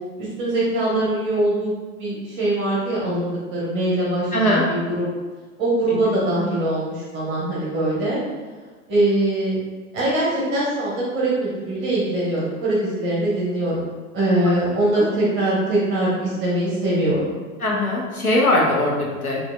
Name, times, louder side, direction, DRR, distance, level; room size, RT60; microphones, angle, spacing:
voice 1, 0.2-5.1 5.6-8.2 8.9-9.6 9.9-17.4, right 1 dB, 25° right, -6 dB, 1.1 m, -22 dB
voice 2, 4.3-4.6 5.9-6.0 14.4-14.5 15.0-15.1 17.6-19.4, left 1 dB, 90° left, -3 dB, 1.0 m, -20 dB
6.0 x 2.6 x 2.3 m, 1.4 s
figure-of-eight pair, 100°, 42 cm